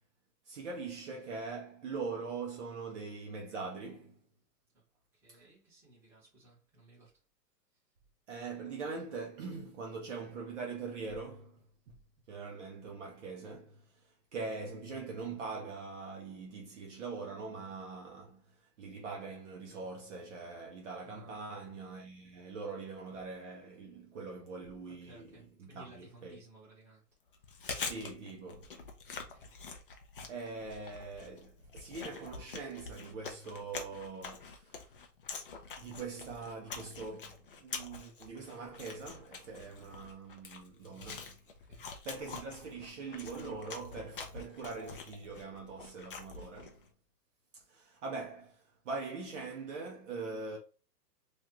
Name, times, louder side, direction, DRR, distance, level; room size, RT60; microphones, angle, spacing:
voice 1, 0.5-4.2 5.3-5.4 8.3-11.9 12.3-13.8 14.3-18.4 18.8-26.4 27.8-28.8 30.3-34.9 35.8-41.4 42.0-46.8 47.5-50.6, right 4 dB, 45° right, 0.9 m, -42 dB
voice 2, 5.2-7.1 21.0-21.4 24.8-27.0 29.3-29.5 40.8-41.3 41.6-41.9, right 1 dB, 5° right, 1.3 m, -58 dB
Chewing mastication, 27.3-46.8, left 4 dB, 35° left, 0.4 m, -46 dB
3.2 x 2.5 x 2.9 m
hypercardioid pair, 150°, 50 cm